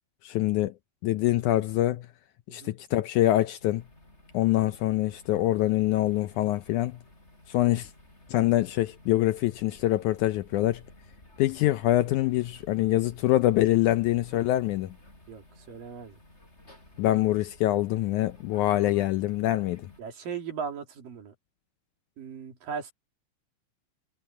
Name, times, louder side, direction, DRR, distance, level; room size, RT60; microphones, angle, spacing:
voice 1, 0.2-0.7 1.0-2.1 2.5-3.8 4.3-7.0 7.5-7.9 8.3-10.8 11.4-14.9 17.0-19.9, left 15 dB, 80° left, 1.8 m, -25 dB
sound 1, 3.6-20.0, left 1 dB, 15° left, 7.0 m, -55 dB
voice 2, 15.3-16.2 20.0-21.3 22.2-22.9, right 6 dB, 75° right, 4.8 m, -38 dB
omnidirectional pair, 4.0 m